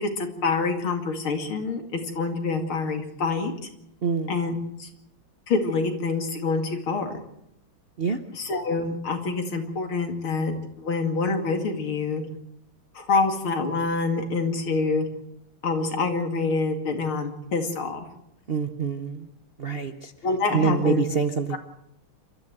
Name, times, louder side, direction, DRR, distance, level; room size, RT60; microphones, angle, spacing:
voice 1, 0.0-3.5 4.3-4.9 5.5-7.2 8.3-12.2 12.9-15.1 15.6-18.0 20.2-21.0 21.5-21.6, left 4 dB, 75° left, 5 dB, 3.2 m, -26 dB
voice 2, 4.0-4.4 8.0-8.2 18.5-19.3 19.6-20.1 20.5-21.6, right 5 dB, 50° right, 8 dB, 0.7 m, -25 dB
28.0 x 13.5 x 7.8 m, 0.78 s
omnidirectional pair, 2.3 m